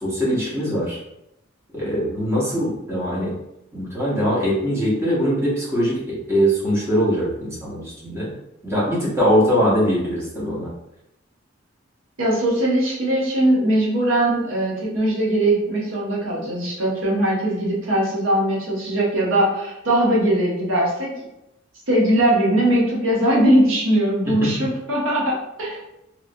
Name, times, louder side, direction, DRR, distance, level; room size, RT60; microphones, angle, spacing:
voice 1, 0.0-1.0 1.7-3.3 3.7-8.3 8.6-10.7 24.4-24.5, equal, 15° right, -7 dB, 0.9 m, -22 dB
voice 2, 12.2-21.1 21.9-25.8, right 1 dB, 80° right, -4 dB, 0.9 m, -20 dB
3.0 x 2.5 x 2.6 m, 0.85 s
head